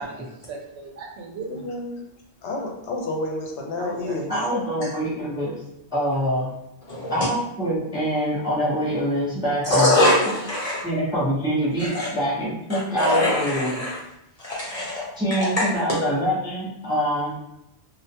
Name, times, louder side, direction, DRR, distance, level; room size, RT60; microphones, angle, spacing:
voice 1, 0.0-1.6 3.8-4.2, right 3 dB, 75° right, 1 dB, 0.9 m, -36 dB
voice 2, 1.5-2.0 2.4-4.3, left 2 dB, 85° left, 1 dB, 0.9 m, -30 dB
voice 3, 4.3-5.6 5.9-6.5 7.1-10.0 10.3-10.4 10.8-13.8 15.2-17.3, equal, 5° right, -8 dB, 0.6 m, -25 dB
voice 4, 6.9-7.3 9.7-10.8 11.8-12.1 12.7-13.9 14.4-15.0 15.6-15.7, left 1 dB, 35° left, -8 dB, 0.9 m, -22 dB
2.3 x 2.2 x 2.7 m, 0.83 s
omnidirectional pair, 1.1 m